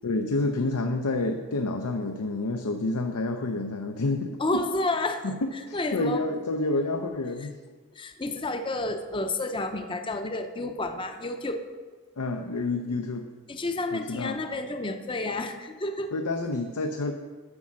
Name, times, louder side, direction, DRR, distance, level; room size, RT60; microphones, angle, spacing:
voice 1, 0.0-4.4 5.2-7.5 12.2-13.3 13.9-14.4 16.1-17.1, left 2 dB, 85° left, 5 dB, 0.7 m, -29 dB
voice 2, 4.4-5.2 5.7-6.3 8.0-11.7 13.5-16.1, left 2 dB, 20° left, 6 dB, 0.6 m, -30 dB
9.7 x 6.3 x 7.3 m, 1.4 s
head